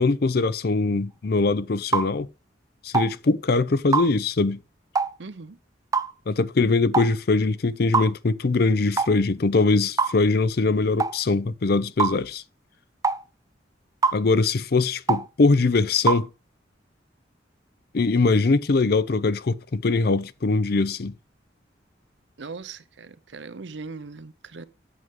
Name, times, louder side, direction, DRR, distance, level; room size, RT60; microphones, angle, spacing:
voice 1, 0.0-2.3 2.8-4.6 6.3-12.4 14.1-16.3 17.9-21.1, left 3 dB, 55° left, 0.5 m, -22 dB
sound 1, 1.9-2.1 2.9-3.1 3.9-4.1 4.9-5.1 5.9-6.1 6.9-7.1 7.9-8.1 9.0-9.1 10.0-10.2 11.0-11.2 12.0-12.2 13.0-13.2 14.0-14.2 15.1-15.3 16.1-16.2, right 4 dB, 20° right, 0.3 m, -23 dB
voice 2, 5.2-5.6 22.4-24.6, right 4 dB, 70° right, 0.7 m, -39 dB
8.0 x 7.4 x 3.6 m
head